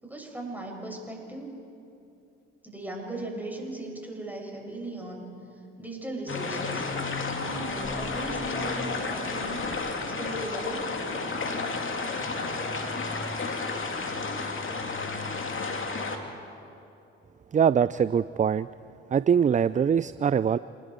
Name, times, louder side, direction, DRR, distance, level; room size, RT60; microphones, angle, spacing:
voice 1, 0.0-1.5 2.6-5.2 5.8-6.8 7.4-9.6 10.2-10.9, right 2 dB, 5° right, 0 dB, 7.0 m, -37 dB
sound 1, 6.3-16.2, left 3 dB, 45° left, 2.7 m, -31 dB
voice 2, 17.5-18.7 19.1-20.6, right 7 dB, 25° right, 17 dB, 0.4 m, -23 dB
28.0 x 20.0 x 4.7 m, 2.7 s
hypercardioid pair, 45°, 29 cm